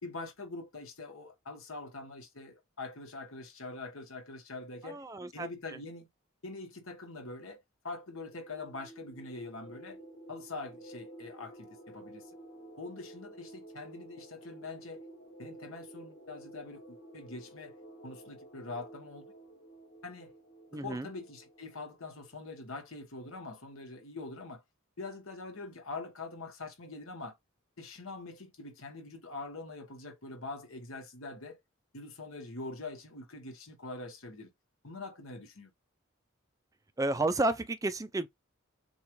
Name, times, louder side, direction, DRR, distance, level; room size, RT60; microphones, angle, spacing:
voice 1, 0.0-5.0 5.3-6.1 6.4-10.0 10.3-12.3 12.8-15.0 15.4-17.7 18.0-19.3 20.0-20.3 20.7-24.6 25.0-27.4 27.8-31.6 31.9-34.5 34.8-35.7, left 3 dB, 85° left, 1.4 m, -44 dB
voice 2, 4.8-5.8 20.7-21.1 37.0-38.3, right 2 dB, 15° right, 0.4 m, -32 dB
sound 1, 8.0-22.3, right 1 dB, 60° left, 1.7 m, -52 dB
6.9 x 2.4 x 3.0 m
head